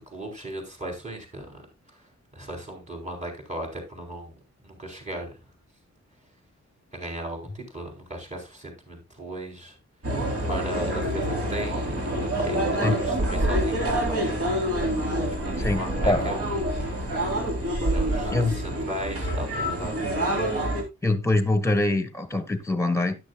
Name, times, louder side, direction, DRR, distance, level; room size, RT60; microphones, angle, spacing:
voice 1, 0.1-1.6 2.3-4.3 4.6-5.3 6.9-9.8 10.5-12.1 12.4-14.3 15.3-16.5 16.8-16.9 17.7-20.1, right 1 dB, 25° right, 4.2 m, -36 dB
Diversão Noturna - Nightlife, 10.0-20.8, right 1 dB, 50° right, 3.9 m, -27 dB
voice 2, 15.6-16.2 18.3-18.6 21.0-23.2, left 2 dB, 10° left, 1.5 m, -24 dB
13.0 x 10.5 x 2.4 m
wide cardioid pair, 175°, 29 cm